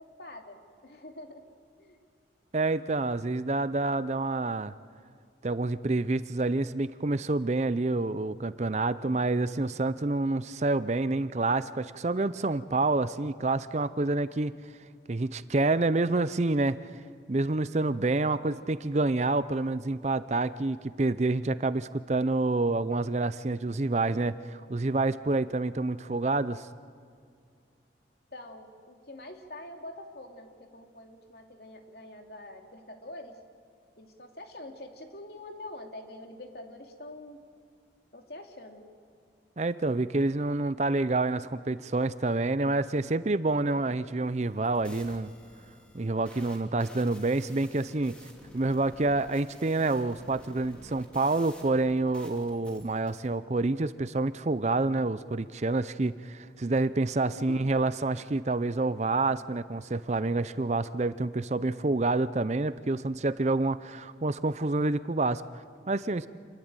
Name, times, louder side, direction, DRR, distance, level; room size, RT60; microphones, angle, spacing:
voice 1, 0.0-1.4 1.8-2.0 18.3-18.7 28.3-33.4 34.0-37.4 38.1-38.8 57.3-57.7, left 1 dB, 60° left, 3 dB, 2.8 m, -45 dB
voice 2, 2.5-4.7 5.4-14.5 15.1-16.8 17.3-26.7 39.6-45.3 45.9-48.2 48.5-66.3, right 2 dB, 40° right, 15 dB, 0.6 m, -28 dB
sound 1, 44.3-53.3, equal, 5° left, 3.0 m, -52 dB
28.0 x 21.0 x 9.0 m, 2.3 s
head